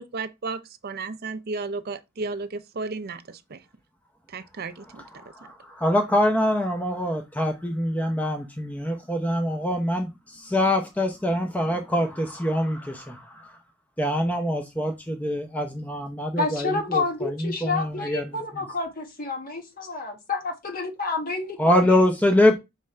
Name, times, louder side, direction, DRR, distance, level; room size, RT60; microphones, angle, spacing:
voice 1, 0.0-3.6 4.3-5.0, right 3 dB, 45° right, 0.5 m, -33 dB
voice 2, 5.1-13.6 14.0-18.6 21.6-22.6, left 1 dB, 5° left, 0.7 m, -24 dB
voice 3, 16.4-22.1, left 3 dB, 40° left, 1.4 m, -29 dB
6.4 x 3.6 x 4.3 m
head